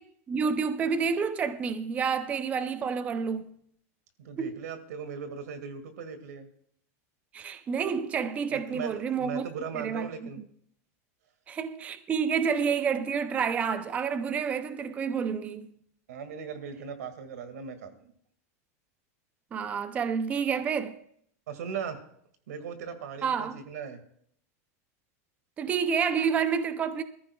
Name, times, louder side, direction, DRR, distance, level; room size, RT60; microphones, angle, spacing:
voice 1, 0.3-3.5 4.4-4.6 7.3-9.5 9.7-10.3 11.5-15.7 19.5-21.0 23.2-23.6 25.6-27.0, right 6 dB, 15° right, 0.5 m, -29 dB
voice 2, 4.2-6.5 8.5-10.4 16.1-18.1 21.5-22.0 22.5-24.0, right 6 dB, 90° right, 1.9 m, -38 dB
23.0 x 14.0 x 2.3 m
supercardioid pair, 160°, 8 cm